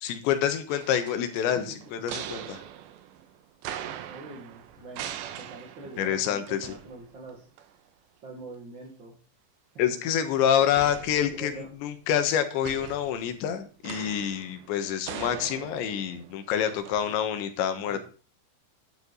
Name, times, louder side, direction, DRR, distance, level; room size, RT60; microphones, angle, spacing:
voice 1, 0.0-2.6 6.0-6.7 9.8-18.0, left 9 dB, 80° left, 8 dB, 3.6 m, -27 dB
sound 1, 0.7-7.3 7.6-7.7 10.8-11.8 12.6-17.2, right 10 dB, 80° right, 3.2 m, -42 dB
voice 2, 4.1-7.5 8.2-9.2 11.3-11.7 17.8-18.0, right 3 dB, 40° right, -1 dB, 1.8 m, -44 dB
12.0 x 10.5 x 4.1 m, 0.37 s
omnidirectional pair, 5.1 m